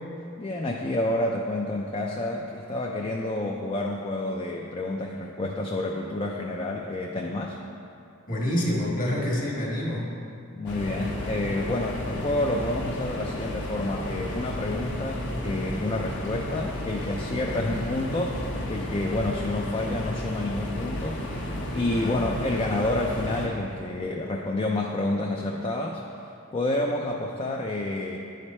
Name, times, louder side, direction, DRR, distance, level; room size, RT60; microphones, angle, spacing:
voice 1, 0.4-7.6 10.5-18.4 18.7-26.0 26.5-28.2, left 2 dB, 25° left, 0 dB, 0.4 m, -29 dB
voice 2, 8.3-10.0 17.5-17.9 21.9-22.2, left 1 dB, 40° left, -3 dB, 1.5 m, -28 dB
sound 1, 10.7-23.5, left 1 dB, 60° left, 1.1 m, -33 dB
10.5 x 5.0 x 4.2 m, 2.7 s
head